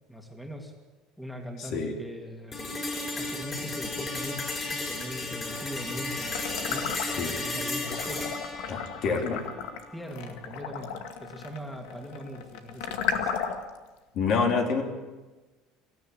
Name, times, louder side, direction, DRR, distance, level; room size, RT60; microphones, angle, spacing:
voice 1, 0.1-0.7 1.2-8.2 9.0-9.4 9.9-13.3, equal, 5° left, 3 dB, 2.7 m, -41 dB
voice 2, 1.6-1.9 7.2-7.4 8.7-9.4 14.1-14.8, left 5 dB, 55° left, 3 dB, 3.3 m, -27 dB
sound 1, 2.5-10.5, left 2 dB, 25° left, 5.6 m, -34 dB
sound 2, 6.3-7.4 7.8-13.8, left 7 dB, 85° left, 2.1 m, -34 dB
25.0 x 14.0 x 9.0 m, 1.2 s
cardioid pair, 130°, 0 cm